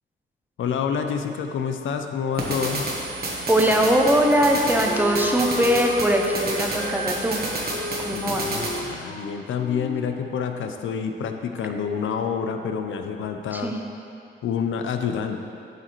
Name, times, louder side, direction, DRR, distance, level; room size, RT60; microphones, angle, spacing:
voice 1, 0.6-2.9 8.1-13.7 14.4-15.4, left 7 dB, 80° left, 6 dB, 0.5 m, -28 dB
sound 1, 2.3-8.8, right 2 dB, 50° right, 1.3 m, -30 dB
voice 2, 3.5-7.4 8.0-8.6 13.5-13.8, equal, 10° right, 1 dB, 0.6 m, -21 dB
Wind instrument woodwind instrument, 3.9-10.9, left 1 dB, 35° left, 1.3 m, -34 dB
8.2 x 6.4 x 3.0 m, 2.6 s
cardioid pair, 125°, 20 cm